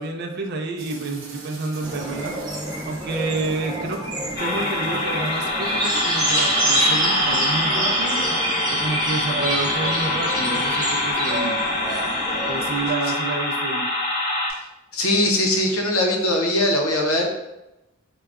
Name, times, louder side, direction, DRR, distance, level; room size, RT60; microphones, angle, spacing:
voice 1, 0.0-2.4 2.9-4.0 4.4-8.3 8.7-11.6 12.5-13.9, right 3 dB, 50° right, 2 dB, 0.4 m, -29 dB
sound 1, 0.8-6.8, right 1 dB, 65° right, 0.8 m, -41 dB
sound 2, 1.8-12.9, right 1 dB, 20° right, 0.7 m, -26 dB
sound 3, 4.4-14.5, left 2 dB, 50° left, 0.6 m, -25 dB
voice 2, 14.9-17.3, left 1 dB, 85° left, 1 dB, 0.7 m, -20 dB
3.8 x 2.2 x 3.4 m, 0.94 s
head